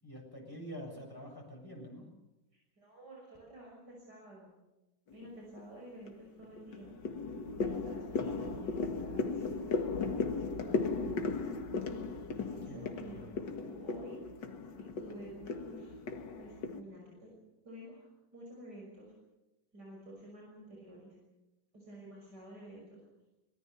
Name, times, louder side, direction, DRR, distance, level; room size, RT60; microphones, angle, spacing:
voice 1, 0.0-2.1 12.7-13.3, equal, 10° left, 0 dB, 7.5 m, -46 dB
voice 2, 2.8-4.5 5.1-6.9 7.5-11.4 12.2-14.2 14.8-15.9 16.4-17.3 17.6-19.1 19.7-21.2 21.7-23.0, right 1 dB, 55° right, -2 dB, 6.7 m, -51 dB
sound 1, 5.1-5.6 6.1-16.8, left 4 dB, 65° left, 2.3 m, -36 dB
24.5 x 22.0 x 7.0 m, 0.96 s
omnidirectional pair, 2.1 m